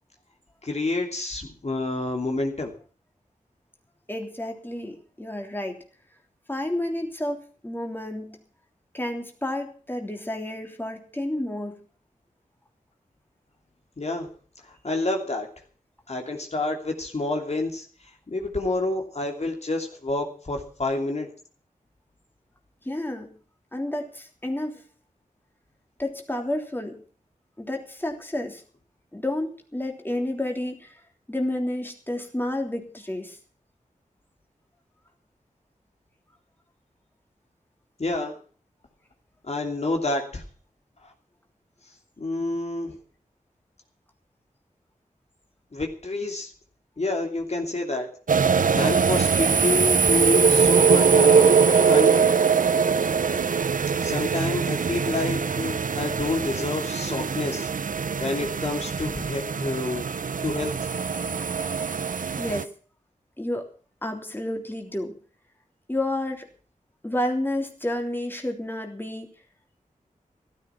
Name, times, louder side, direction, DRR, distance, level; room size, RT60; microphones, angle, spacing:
voice 1, 0.6-2.7 14.0-14.3 14.7-15.5 16.1-17.8 18.3-21.3 38.0-38.4 39.4-40.4 41.0-41.1 42.2-43.0 45.7-46.5 47.0-48.1 48.7-51.5 51.9-52.2 54.0-57.7 58.1-60.1 60.4-60.9, left 2 dB, 50° left, 2 dB, 2.9 m, -28 dB
voice 2, 4.1-5.8 6.5-8.4 8.9-11.8 22.8-23.4 23.7-24.8 26.0-27.0 27.6-28.6 29.1-31.0 31.3-33.4 62.4-62.7 63.4-63.7 64.0-65.2 65.9-66.5 67.0-69.3, left 1 dB, 15° left, 2 dB, 3.2 m, -30 dB
sound 1, 48.3-62.6, right 6 dB, 65° right, 0.7 m, -22 dB
15.0 x 13.0 x 5.9 m, 0.41 s
wide cardioid pair, 75°, 14 cm